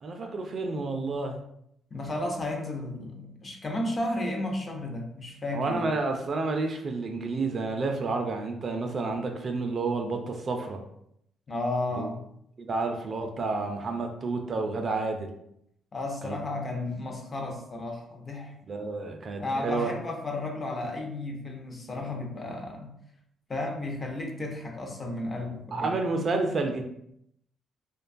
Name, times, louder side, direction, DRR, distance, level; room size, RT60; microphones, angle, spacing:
voice 1, 0.0-1.4 5.5-10.8 12.0-12.1 12.6-15.3 16.2-16.4 18.7-19.9 25.7-26.8, right 3 dB, 45° right, 4 dB, 0.4 m, -30 dB
voice 2, 1.9-5.9 11.5-12.2 15.9-18.5 19.4-22.9 23.5-25.9, left 2 dB, 35° left, 2 dB, 0.5 m, -33 dB
2.5 x 2.2 x 2.5 m, 0.73 s
cardioid pair, 90°, 0 cm